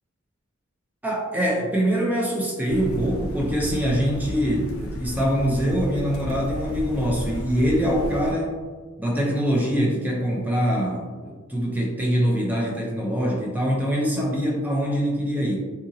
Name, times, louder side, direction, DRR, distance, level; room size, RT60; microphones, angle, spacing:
voice 1, 1.0-8.6 9.0-15.6, equal, 10° right, -3 dB, 0.5 m, -24 dB
sound 1, 2.7-8.3, left 1 dB, 85° left, 0.4 m, -34 dB
2.8 x 2.6 x 2.6 m, 1.4 s
head